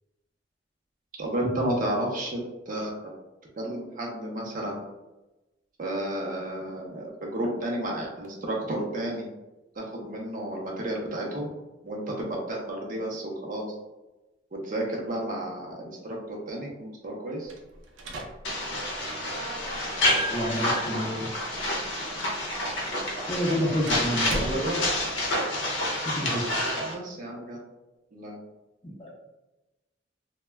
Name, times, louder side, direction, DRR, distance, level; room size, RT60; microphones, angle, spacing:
voice 1, 1.2-2.4 2.7-2.9 3.6-4.8 5.8-9.3 9.8-11.5 11.8-13.7 14.5-17.5 24.3-24.8 26.8-27.6 28.1-28.4, right 1 dB, 45° right, -1 dB, 0.6 m, -32 dB
sound 1, 17.4-25.3, right 1 dB, 90° right, 0.4 m, -41 dB
sound 2, 18.4-26.9, left 1 dB, 80° left, 0.6 m, -29 dB
voice 2, 20.1-21.3 23.3-24.4 26.0-26.4 28.8-29.1, equal, 25° left, -4 dB, 0.6 m, -29 dB
2.2 x 2.1 x 3.3 m, 1.0 s
head